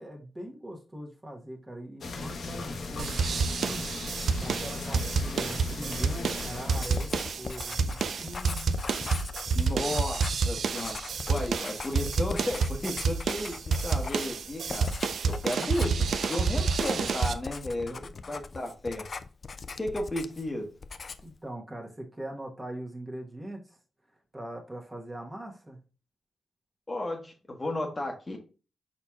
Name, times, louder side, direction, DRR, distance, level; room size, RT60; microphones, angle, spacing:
voice 1, 0.0-3.9 4.4-8.8 17.9-18.2 21.2-23.8 24.3-25.8, right 1 dB, 20° right, 1 dB, 1.1 m, -41 dB
sound 1, 2.0-7.3, left 3 dB, 65° left, 0.8 m, -38 dB
sound 2, 3.0-17.3, right 5 dB, 70° right, 0.3 m, -29 dB
Writing, 6.7-20.5 20.8-21.4, left 4 dB, 50° left, 0.4 m, -40 dB
voice 2, 9.5-10.9 11.3-14.9 15.3-19.1 19.8-20.7 26.9-28.4, left 1 dB, 30° left, 2 dB, 1.0 m, -34 dB
4.4 x 4.1 x 2.3 m, 0.34 s
cardioid pair, 60°, 0 cm